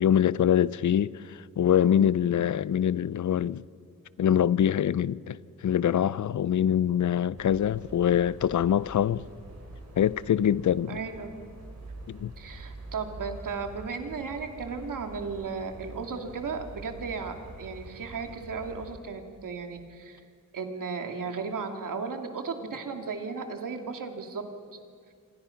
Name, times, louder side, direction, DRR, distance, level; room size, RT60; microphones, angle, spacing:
voice 1, 0.0-3.6 4.2-5.4 5.6-9.2 10.0-11.0 12.1-12.3, left 9 dB, 65° left, 0.6 m, -24 dB
voice 2, 1.8-2.2 10.9-11.3 12.4-20.2 20.5-24.4, right 5 dB, 85° right, 2.5 m, -35 dB
sound 1, 7.4-18.9, right 1 dB, 55° right, 6.2 m, -46 dB
28.0 x 26.0 x 5.8 m
wide cardioid pair, 135°, 31 cm